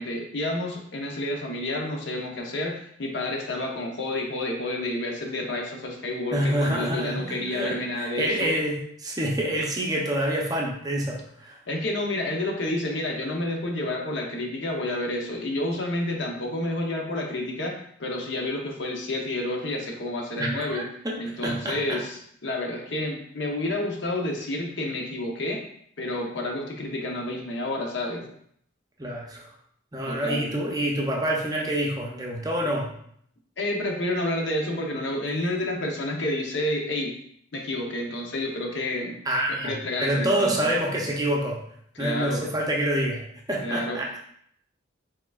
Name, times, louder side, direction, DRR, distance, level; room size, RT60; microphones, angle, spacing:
voice 1, 0.0-8.5 11.7-17.7 18.0-20.8 21.2-25.6 26.0-28.3 30.0-30.5 33.6-37.1 37.5-39.2 39.6-40.5 42.0-42.4 43.6-44.0, left 1 dB, 65° left, 1 dB, 0.8 m, -29 dB
voice 2, 6.3-11.6 20.4-22.0 29.0-29.5 29.9-33.0 39.3-41.6 42.0-44.1, right 1 dB, 20° right, -1 dB, 0.6 m, -27 dB
4.6 x 3.7 x 2.4 m, 0.67 s
head